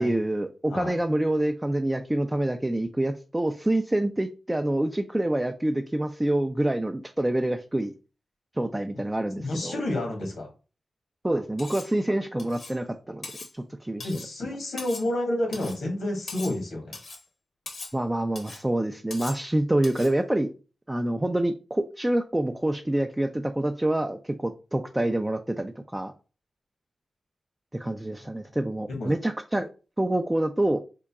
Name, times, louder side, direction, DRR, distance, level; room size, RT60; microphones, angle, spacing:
voice 1, 0.0-7.9 8.6-9.8 11.2-13.3 13.8-14.1 17.9-20.5 20.9-26.1 27.7-29.6 30.0-30.8, right 1 dB, 15° right, 5 dB, 0.4 m, -26 dB
voice 2, 9.4-10.5 14.0-17.0 28.2-28.3 28.9-29.1, left 1 dB, 85° left, 0 dB, 1.6 m, -30 dB
Cutlery silverware, 11.6-11.9 12.4-12.8 13.2-13.5 14.0-14.3 14.8-15.1 15.5-15.8 16.3-16.6 16.9-17.2 17.7-18.0 18.4-18.6 19.1-19.4 19.8-20.1, left 3 dB, 65° left, 1.0 m, -41 dB
3.8 x 2.2 x 3.5 m, 0.34 s
cardioid pair, 45°, 0 cm